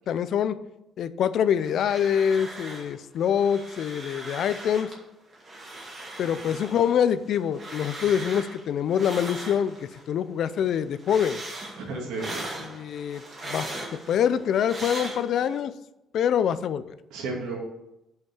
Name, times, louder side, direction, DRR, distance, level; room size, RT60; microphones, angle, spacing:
voice 1, 0.1-0.6 1.0-4.9 6.2-9.8 10.1-11.4 12.6-13.8 14.1-15.7 16.1-16.9, left 8 dB, 55° left, 14 dB, 0.4 m, -25 dB
sound 1, 1.6-3.0 3.2-5.0 5.3-10.1 10.4-15.6, right 2 dB, 30° right, 2.1 m, -39 dB
voice 2, 11.8-12.7 17.1-17.6, right 3 dB, 90° right, 0 dB, 2.1 m, -33 dB
5.8 x 5.5 x 6.9 m, 0.89 s
cardioid pair, 145°, 0 cm